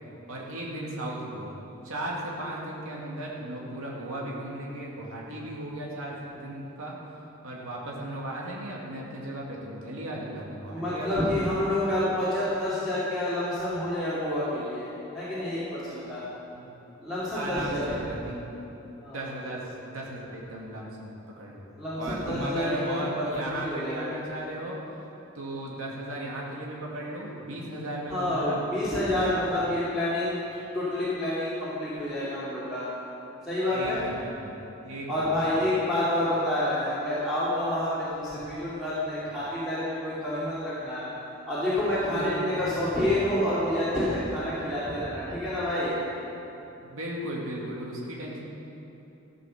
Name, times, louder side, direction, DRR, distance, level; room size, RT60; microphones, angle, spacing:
voice 1, 0.3-1.6 1.8-7.0 7.4-11.4 16.5-16.7 17.3-18.6 19.1-21.6 21.9-24.8 25.3-28.6 29.1-29.4 33.7-35.6 42.1-42.7 46.8-48.4, right 1 dB, 80° right, -3 dB, 2.1 m, -36 dB
voice 2, 10.7-14.9 15.1-16.2 17.0-17.8 19.0-19.2 21.8-23.3 23.6-24.2 28.1-30.4 30.7-32.9 33.5-34.0 35.1-41.0 41.5-45.9, left 1 dB, ahead, -13 dB, 2.5 m, -28 dB
14.5 x 7.6 x 6.4 m, 2.9 s
head